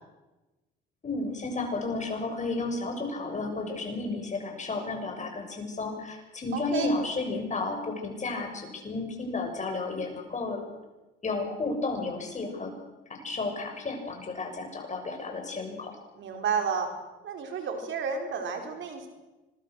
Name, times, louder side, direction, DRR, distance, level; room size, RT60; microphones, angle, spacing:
voice 1, 1.0-10.6 11.2-12.7 13.1-15.9, left 3 dB, 35° left, 3 dB, 7.1 m, -32 dB
voice 2, 6.5-6.9 16.2-16.9 17.2-19.1, right 6 dB, 75° right, 4 dB, 4.5 m, -31 dB
25.5 x 21.5 x 6.5 m, 1.1 s
cardioid pair, 90°, 20 cm